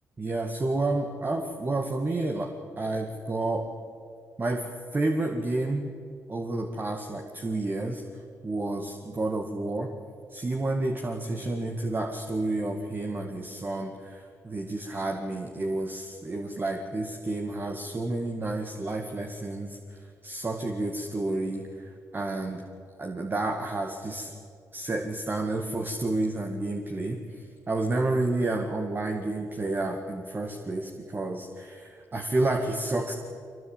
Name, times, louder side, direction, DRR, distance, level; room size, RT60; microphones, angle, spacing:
voice 1, 0.2-3.7 4.4-4.6 4.9-5.9 6.3-8.0 8.4-9.9 10.3-22.7 23.0-24.3 24.7-33.1, right 2 dB, 30° right, 4 dB, 2.0 m, -30 dB
22.0 x 18.5 x 8.9 m, 2.4 s
supercardioid pair, 65°, 6 cm